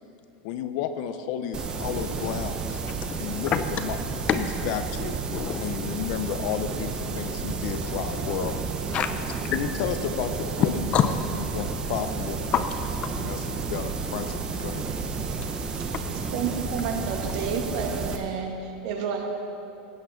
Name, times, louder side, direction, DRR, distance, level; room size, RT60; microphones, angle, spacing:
voice 1, 0.4-2.8 3.2-5.2 5.6-8.6 9.5-12.4 13.2-14.9, left 9 dB, 50° left, 9 dB, 0.8 m, -32 dB
sound 1, 1.5-18.2, right 4 dB, 15° right, 0.8 m, -31 dB
voice 2, 5.3-5.6 8.9-9.6 10.6-10.7 10.9-11.1 11.3-11.4 12.5-13.2 15.4-16.0, left 10 dB, 25° left, 9 dB, 0.5 m, -26 dB
voice 3, 16.1-19.2, right 6 dB, 55° right, 2 dB, 1.9 m, -30 dB
16.0 x 8.9 x 5.9 m, 2.8 s
supercardioid pair, 160°, 5 cm